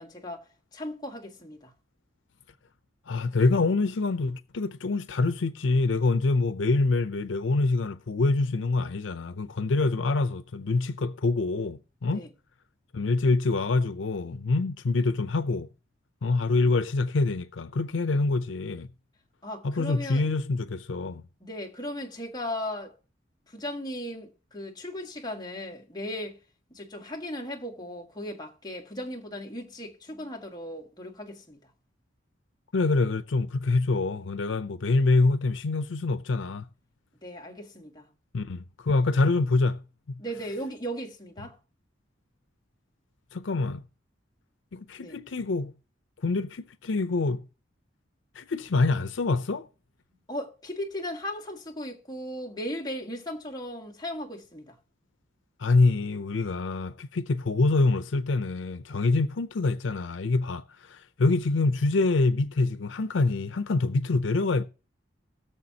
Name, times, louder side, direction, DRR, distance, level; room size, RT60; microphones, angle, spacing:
voice 1, 0.0-1.7 12.1-12.3 19.4-20.2 21.4-22.9 23.5-26.4 26.7-31.6 37.2-38.1 40.2-41.6 45.0-45.2 50.3-54.8, equal, 20° left, 1.6 m, -37 dB
voice 2, 3.1-12.2 12.9-15.7 16.2-18.9 19.6-21.3 32.7-36.6 38.3-39.8 43.3-43.8 44.7-45.7 46.2-47.4 48.3-49.7 55.6-64.6, left 3 dB, 85° left, 0.6 m, -25 dB
20.5 x 6.9 x 2.8 m
head